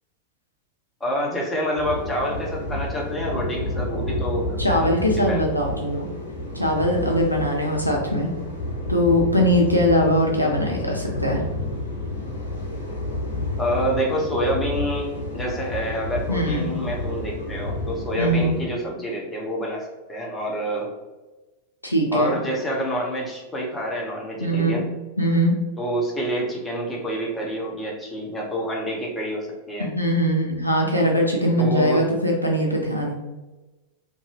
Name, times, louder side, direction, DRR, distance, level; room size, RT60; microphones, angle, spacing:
voice 1, 1.0-5.4 13.6-20.9 22.1-24.8 25.8-29.9 31.6-32.0, equal, 15° left, -2 dB, 0.7 m, -27 dB
sound 1, 1.8-18.6, left 2 dB, 65° left, 0.8 m, -30 dB
voice 2, 4.6-6.1 6.5-8.3 8.9-11.5 16.3-16.7 18.1-18.6 21.8-22.3 24.4-24.8 25.2-25.6 29.8-33.1, equal, 90° left, -1 dB, 0.4 m, -21 dB
2.6 x 2.3 x 2.8 m, 1.1 s
figure-of-eight pair, 90°, 0 cm